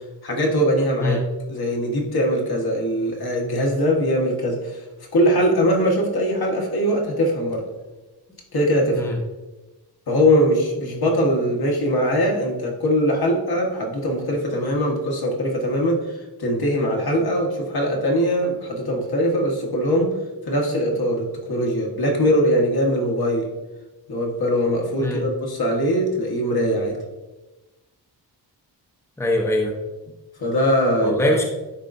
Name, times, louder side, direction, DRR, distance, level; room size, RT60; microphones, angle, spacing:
voice 1, 0.2-1.2 1.5-4.8 5.1-7.6 8.5-9.1 10.1-20.2 20.5-23.5 24.1-27.0 30.4-31.4, equal, 65° left, -1 dB, 1.4 m, -21 dB
voice 2, 29.2-29.7 31.0-31.5, left 1 dB, 5° left, 1 dB, 0.7 m, -22 dB
10.0 x 3.7 x 2.6 m, 1.1 s
wide cardioid pair, 135°, 40 cm